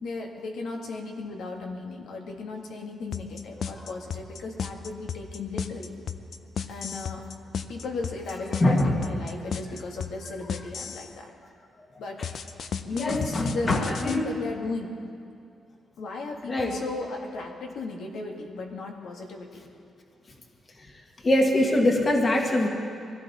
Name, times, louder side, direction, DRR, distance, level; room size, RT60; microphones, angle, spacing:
voice 1, 0.0-6.0 6.7-7.2 7.7-11.3 12.0-12.3 12.5-14.9 16.0-19.6, left 3 dB, 80° left, 1 dB, 1.8 m, -35 dB
sound 1, 3.1-11.1 12.2-14.2, left 7 dB, 60° left, 0.6 m, -34 dB
voice 2, 8.6-9.0 13.0-14.4 16.5-16.8 21.2-22.7, left 1 dB, 30° left, 1 dB, 1.6 m, -23 dB
22.0 x 15.5 x 4.2 m, 2.4 s
cardioid pair, 135°, 0 cm